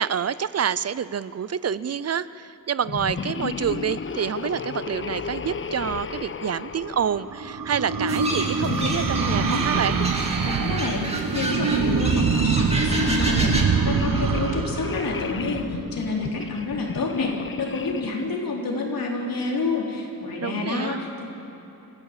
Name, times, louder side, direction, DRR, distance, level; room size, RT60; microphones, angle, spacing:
voice 1, 0.0-10.0 20.4-21.0, right 8 dB, 45° right, 17 dB, 0.4 m, -27 dB
sound 1, 2.8-7.7 8.5-10.9 11.5-18.3, left 5 dB, 35° left, 0.6 m, -33 dB
sound 2, 6.6-16.2, right 6 dB, 75° right, 1.2 m, -25 dB
sound 3, 8.1-13.6, right 1 dB, 20° right, 2.4 m, -30 dB
voice 2, 10.4-11.1 11.3-21.2, left 3 dB, 85° left, -1 dB, 3.7 m, -28 dB
26.5 x 15.0 x 7.4 m, 3.0 s
wide cardioid pair, 145°, 34 cm